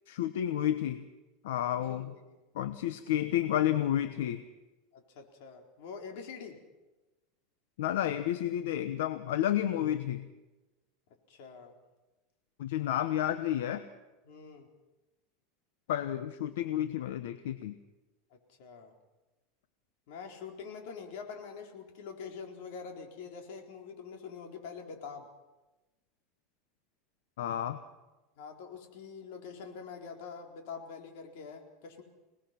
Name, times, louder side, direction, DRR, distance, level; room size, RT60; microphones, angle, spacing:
voice 1, 0.1-1.0 1.4-2.1 2.5-4.4 7.8-10.3 12.6-13.8 15.9-17.7 27.4-27.8, left 11 dB, 85° left, 11 dB, 1.1 m, -31 dB
voice 2, 1.7-2.4 4.9-6.6 11.3-11.7 14.2-14.7 18.3-18.9 20.1-25.3 28.4-32.0, left 5 dB, 65° left, 3 dB, 4.2 m, -45 dB
27.0 x 19.5 x 6.0 m, 1.1 s
supercardioid pair, 145°, 0 cm